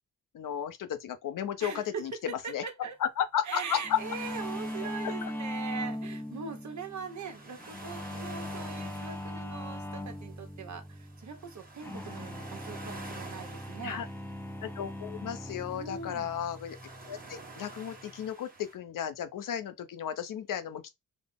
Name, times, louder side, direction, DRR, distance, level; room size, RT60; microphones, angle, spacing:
voice 1, 0.3-2.6 3.0-4.0 5.0-5.3 13.8-14.1 14.6-16.8 17.0-20.9, left 9 dB, 70° left, 0.6 m, -34 dB
voice 2, 1.6-3.0 3.4-14.0 15.7-16.3, right 6 dB, 60° right, 1.0 m, -41 dB
sound 1, 3.8-18.3, left 1 dB, 5° left, 0.4 m, -40 dB
sound 2, 3.9-18.7, right 3 dB, 25° right, 1.2 m, -50 dB
4.0 x 2.0 x 3.4 m
wide cardioid pair, 120°, 33 cm